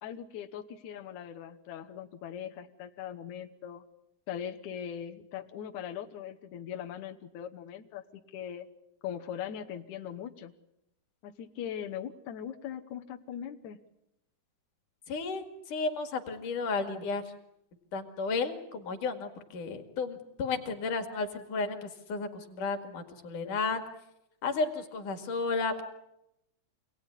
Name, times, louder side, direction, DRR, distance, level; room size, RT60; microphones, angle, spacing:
voice 1, 0.0-3.8 4.3-8.7 9.0-10.5 11.2-13.8, left 9 dB, 70° left, 4 dB, 1.8 m, -40 dB
voice 2, 15.1-17.2 17.9-23.8 24.4-25.8, left 4 dB, 55° left, 7 dB, 3.2 m, -33 dB
27.0 x 18.5 x 9.9 m, 0.86 s
omnidirectional pair, 4.8 m